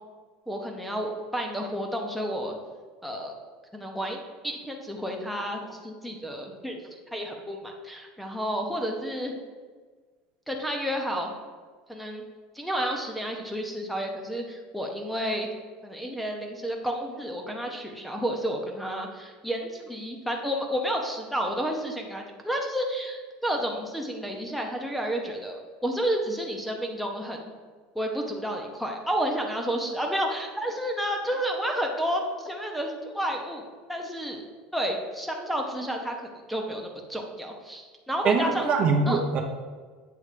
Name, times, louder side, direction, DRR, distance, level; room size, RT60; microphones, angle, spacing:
voice 1, 0.5-2.6 3.0-3.3 3.7-9.4 10.5-11.3 11.9-12.2 12.5-15.5 15.8-27.4 27.9-33.6 33.9-34.4 34.7-38.7 39.1-39.2, equal, ahead, 0 dB, 0.7 m, -31 dB
voice 2, 38.2-39.4, right 4 dB, 40° right, 2 dB, 0.7 m, -23 dB
8.1 x 3.2 x 4.9 m, 1.5 s
cardioid pair, 150°, 4 cm